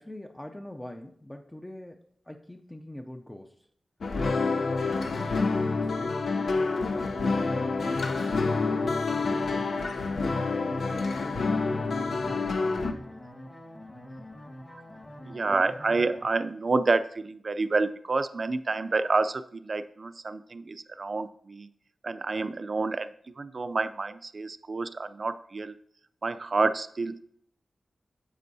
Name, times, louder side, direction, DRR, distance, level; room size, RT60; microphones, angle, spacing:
voice 1, 0.0-3.7 4.3-9.7 10.2-13.2, left 1 dB, 10° left, 3 dB, 0.5 m, -44 dB
sound 1, 4.0-12.9, left 3 dB, 75° left, 0.7 m, -28 dB
sound 2, 7.3-16.2, left 1 dB, 30° left, 1.4 m, -45 dB
voice 2, 15.2-21.7 22.0-25.7 26.2-27.3, right 3 dB, 45° right, 12 dB, 0.4 m, -29 dB
9.8 x 7.4 x 2.7 m, 0.66 s
wide cardioid pair, 115°, 0 cm